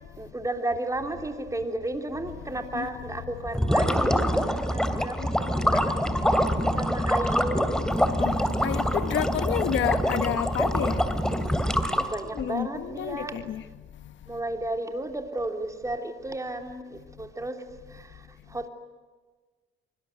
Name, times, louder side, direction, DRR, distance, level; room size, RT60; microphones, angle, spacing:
voice 1, 0.2-5.9 6.8-7.7 12.0-13.4 14.3-17.6 17.9-18.1 18.5-18.7, right 2 dB, 15° right, 3.2 m, -33 dB
sound 1, 3.5-12.4, equal, 5° left, 2.6 m, -25 dB
voice 2, 8.6-11.0 12.4-13.6, left 10 dB, 70° left, 1.3 m, -29 dB
25.0 x 24.5 x 9.3 m
cardioid pair, 90°, 20 cm